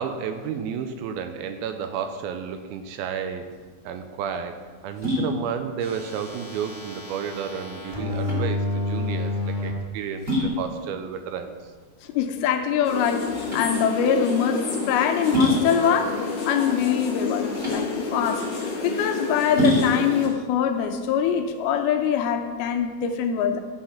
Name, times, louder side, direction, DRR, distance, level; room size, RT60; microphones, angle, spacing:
voice 1, 0.0-3.5 3.8-11.5, right 7 dB, 80° right, 8 dB, 2.3 m, -32 dB
sound 1, 3.4-22.0, left 1 dB, 15° right, 2.5 m, -29 dB
sound 2, 5.8-9.7 10.4-10.5, left 2 dB, 35° left, 0.5 m, -29 dB
voice 2, 12.1-16.2 16.5-18.5 18.8-23.6, left 8 dB, 80° left, 6 dB, 2.5 m, -23 dB
sound 3, 12.8-20.3, left 4 dB, 55° left, 2.9 m, -30 dB
11.5 x 5.9 x 5.8 m, 1.5 s
omnidirectional pair, 4.6 m